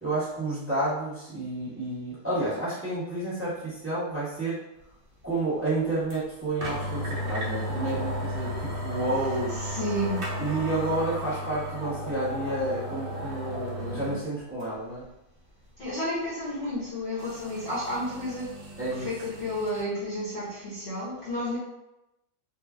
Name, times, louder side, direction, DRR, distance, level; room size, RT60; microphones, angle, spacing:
voice 1, 0.0-4.6 5.2-9.5 10.4-15.0 18.8-19.1, right 2 dB, 10° right, -10 dB, 1.0 m, -30 dB
sound 1, 6.1-6.2 6.6-14.2 14.6-14.7 17.2-19.8, equal, 65° right, 0.5 m, -34 dB
voice 2, 9.5-10.3 15.8-18.5 18.9-21.6, equal, 50° left, -9 dB, 0.9 m, -31 dB
2.9 x 2.5 x 2.5 m, 0.91 s
omnidirectional pair, 1.9 m